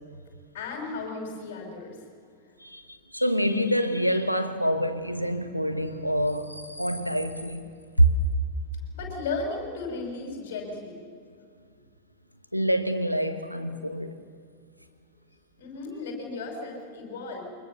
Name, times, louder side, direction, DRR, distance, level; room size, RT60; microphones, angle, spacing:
voice 1, 0.5-2.0 8.9-11.0 15.6-17.5, left 3 dB, 50° left, 5.8 m, -35 dB
voice 2, 2.6-7.7 8.0-8.1 12.5-14.2, right 1 dB, 90° left, 1.3 m, -26 dB
23.5 x 21.0 x 6.9 m
figure-of-eight pair, 90°, 0 cm